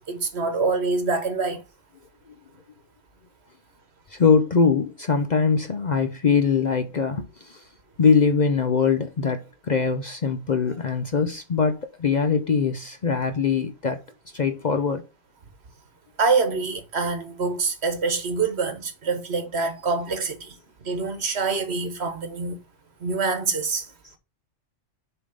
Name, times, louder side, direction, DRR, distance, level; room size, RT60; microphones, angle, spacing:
voice 1, 0.1-1.6 16.2-20.5 20.8-22.6 23.0-23.9, right 4 dB, 60° right, 1.4 m, -25 dB
voice 2, 4.1-7.6 8.0-14.0 14.3-15.0, left 5 dB, 45° left, 0.6 m, -22 dB
7.0 x 3.6 x 5.0 m
omnidirectional pair, 1.2 m